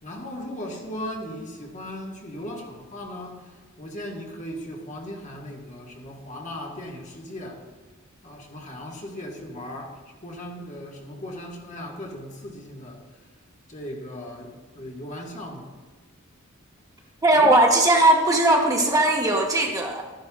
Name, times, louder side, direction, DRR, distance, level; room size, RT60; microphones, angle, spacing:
voice 1, 0.0-7.7 8.2-13.0 13.7-15.7 17.3-17.5, left 1 dB, 35° left, 0 dB, 1.5 m, -37 dB
voice 2, 17.2-20.0, right 1 dB, 15° right, 1 dB, 0.9 m, -18 dB
12.5 x 10.5 x 2.4 m, 1.4 s
head